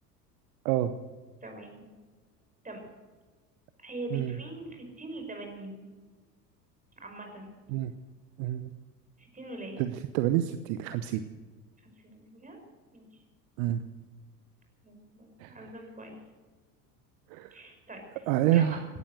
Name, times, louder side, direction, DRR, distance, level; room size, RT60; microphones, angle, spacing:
voice 1, 1.4-1.9 2.6-2.8 3.8-5.8 7.0-7.5 9.2-9.8 11.8-12.6 12.9-13.1 14.8-16.2 17.5-18.2 18.5-18.8, right 1 dB, 15° right, 3 dB, 5.4 m, -43 dB
voice 2, 8.4-8.7 9.8-11.2 13.6-13.8 15.4-15.7 17.3-17.5 18.3-18.8, right 12 dB, 55° right, 11 dB, 0.9 m, -28 dB
17.5 x 12.5 x 6.6 m, 1.4 s
figure-of-eight pair, 70°, 50 cm